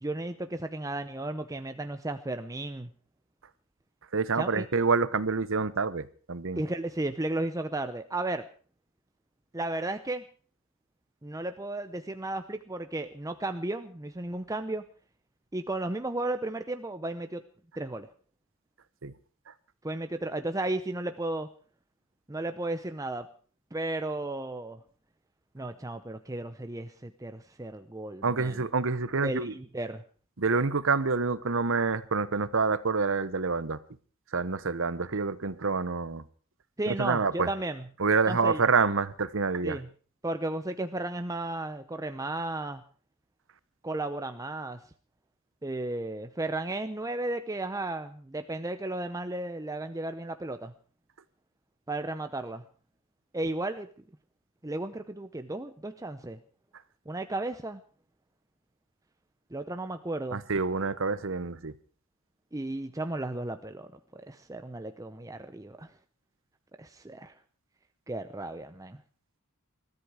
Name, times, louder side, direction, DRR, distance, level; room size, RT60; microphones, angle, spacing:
voice 1, 0.0-2.9 4.4-4.7 6.6-8.5 9.5-10.2 11.2-14.8 15.5-17.4 17.8-18.1 19.8-21.5 22.3-23.3 23.7-24.8 25.5-28.7 29.2-30.0 36.8-37.9 38.3-38.6 39.6-39.9 40.2-42.8 43.8-44.8 45.6-50.7 51.9-52.6 53.3-53.9 54.6-56.4 57.1-57.8 59.5-60.4 62.5-65.9 66.8-67.3 68.1-69.0, right 2 dB, 15° right, 0.7 m, -34 dB
voice 2, 4.1-6.6 19.0-19.1 28.2-29.5 30.4-33.8 34.3-36.2 36.9-37.5 38.0-39.8 60.3-61.7, right 4 dB, 60° right, 1.0 m, -27 dB
22.0 x 13.5 x 4.9 m
head